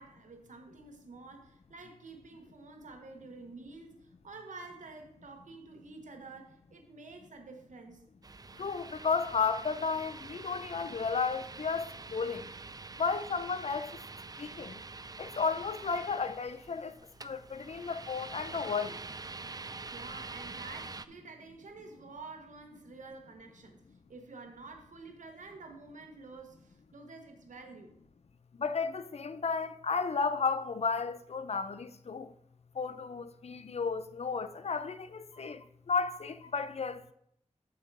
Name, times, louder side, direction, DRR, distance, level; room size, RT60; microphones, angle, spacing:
voice 1, 0.0-8.1 19.9-23.8 24.1-28.0, right 3 dB, 90° right, 1.1 m, -49 dB
sound 1, 8.2-21.0, right 3 dB, 30° right, 0.4 m, -46 dB
voice 2, 8.6-12.5 13.0-13.9 14.4-14.8 15.2-16.9 17.2-19.0 28.6-32.3 32.8-35.6 35.9-37.0, left 5 dB, 60° left, 0.6 m, -33 dB
7.8 x 3.9 x 5.3 m
cardioid pair, 45°, 13 cm